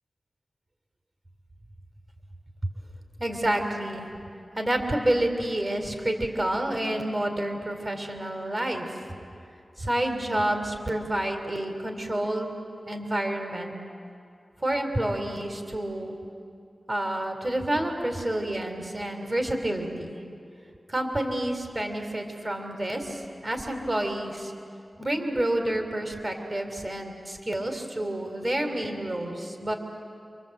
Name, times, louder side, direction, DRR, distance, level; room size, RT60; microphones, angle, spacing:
voice 1, 3.2-4.1 4.5-8.9 9.8-12.5 12.9-13.7 14.6-16.2 16.9-20.2 20.9-24.5 25.0-29.7, right 1 dB, 35° right, 5 dB, 3.8 m, -29 dB
27.5 x 25.0 x 8.0 m, 2.5 s
cardioid pair, 45°, 0 cm